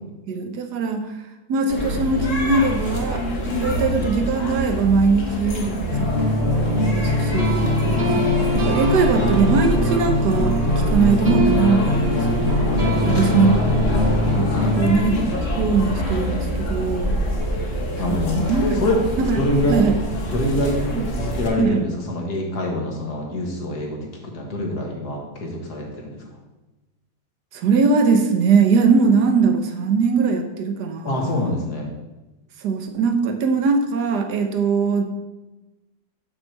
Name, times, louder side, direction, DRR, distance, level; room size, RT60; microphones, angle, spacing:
voice 1, 0.3-1.2 1.5-3.2 3.6-6.1 6.6-10.6 10.9-12.5 13.1-13.6 14.2-15.2 15.6-17.2 18.3-18.8 19.2-19.4 19.7-19.9 21.0-21.1 21.6-21.8 27.5-31.5 32.6-35.0, right 4 dB, 70° right, 5 dB, 1.3 m, -21 dB
sound 1, 1.7-21.5, equal, 50° left, 1.5 m, -25 dB
sound 2, 5.9-14.9, left 1 dB, 40° right, 1.4 m, -22 dB
voice 2, 12.7-13.7 14.5-14.8 18.0-19.0 19.3-19.8 20.3-20.8 21.1-26.2 31.0-31.9, left 1 dB, 65° left, 0 dB, 1.9 m, -26 dB
6.6 x 6.2 x 4.5 m, 1.1 s
omnidirectional pair, 1.9 m